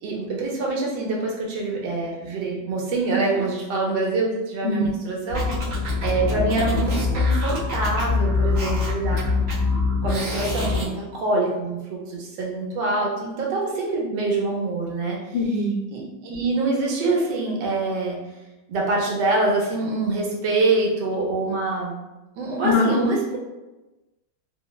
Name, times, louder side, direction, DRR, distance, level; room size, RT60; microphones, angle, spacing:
voice 1, 0.0-5.5 6.0-9.5 10.0-15.2 15.9-18.2 18.7-21.9 22.4-23.4, right 3 dB, 80° right, -2 dB, 1.3 m, -25 dB
sound 1, 5.3-10.9, left 3 dB, 65° right, 0.9 m, -23 dB
voice 2, 15.3-15.7 22.6-23.1, left 3 dB, 80° left, 0 dB, 1.2 m, -21 dB
3.4 x 2.0 x 2.2 m, 1.1 s
omnidirectional pair, 2.0 m